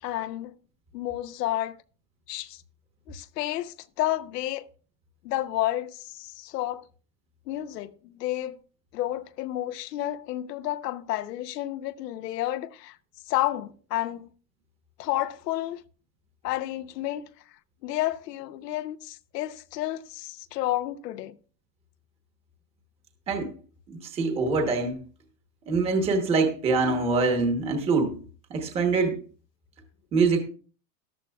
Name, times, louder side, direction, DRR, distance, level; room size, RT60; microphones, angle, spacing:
voice 1, 0.0-0.5 0.9-1.7 2.3-2.6 3.1-4.6 5.2-6.8 7.5-7.9 8.2-8.6 8.9-13.0 13.3-14.3 15.0-15.8 16.4-17.3 17.8-21.3, left 14 dB, 80° left, 0.9 m, -30 dB
voice 2, 23.9-25.0 25.7-28.1 28.5-29.2 30.1-30.4, right 4 dB, 10° right, 1.1 m, -24 dB
14.0 x 11.5 x 2.3 m
supercardioid pair, 180°, 47 cm